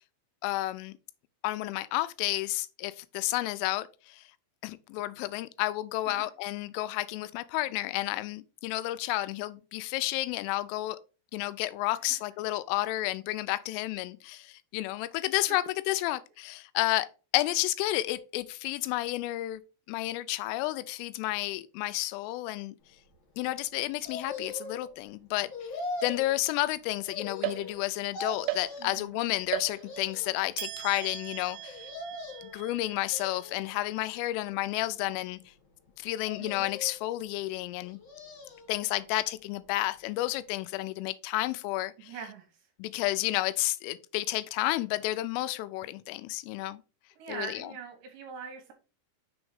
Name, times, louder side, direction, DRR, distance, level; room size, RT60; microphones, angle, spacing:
voice 1, 0.4-0.9 1.4-4.3 4.6-11.0 11.3-17.1 17.3-19.6 19.9-22.8 23.4-31.9 32.4-35.4 36.0-38.0 38.7-42.1 42.8-46.8 47.3-47.7, left 17 dB, 85° left, 3.0 m, -31 dB
sound 1, 24.0-24.9 25.5-26.3 27.0-27.8 28.1-29.0 29.6-30.4 31.6-32.6 33.1-33.8 34.4-35.2 36.2-37.0 37.8-38.7 39.1-39.2, left 3 dB, 60° left, 1.9 m, -41 dB
sound 2, 27.4-28.1 28.5-29.1 29.5-30.2 30.6-34.0, right 15 dB, 90° right, 2.6 m, -39 dB
voice 2, 28.8-29.1 36.4-36.8 42.0-42.7 47.2-48.7, right 7 dB, 75° right, 2.9 m, -43 dB
7.1 x 3.5 x 4.8 m
omnidirectional pair, 5.9 m